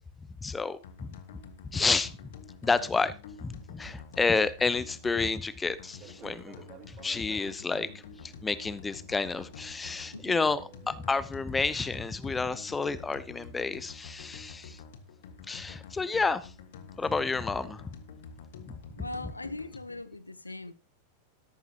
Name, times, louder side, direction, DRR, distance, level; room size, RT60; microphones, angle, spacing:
voice 1, 0.4-1.1 1.6-2.2 2.6-3.1 3.4-6.5 6.9-7.9 8.2-14.8 15.5-16.5 17.0-17.9 19.0-19.3, left 4 dB, 15° left, 0.8 m, -30 dB
sound 1, 0.8-20.0, left 5 dB, 55° left, 1.5 m, -48 dB
Fixed-wing aircraft airplane, 5.9-12.3, right 9 dB, 35° right, 1.7 m, -55 dB
voice 2, 19.0-20.7, left 2 dB, 85° left, 0.7 m, -40 dB
13.0 x 12.0 x 2.9 m
figure-of-eight pair, 90°, 0 cm